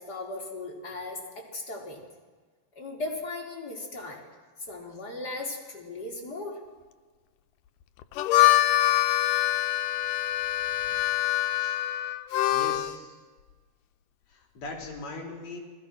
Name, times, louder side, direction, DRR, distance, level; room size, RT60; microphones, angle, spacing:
voice 1, 0.0-2.0 2.8-4.3 4.7-6.6, left 2 dB, 25° left, -1 dB, 4.3 m, -37 dB
Harmonica, 8.0-13.0, left 14 dB, 85° left, 1.8 m, -24 dB
voice 2, 12.5-13.2 14.3-15.6, left 3 dB, 40° left, 0 dB, 5.4 m, -40 dB
30.0 x 20.5 x 6.2 m, 1.4 s
omnidirectional pair, 4.8 m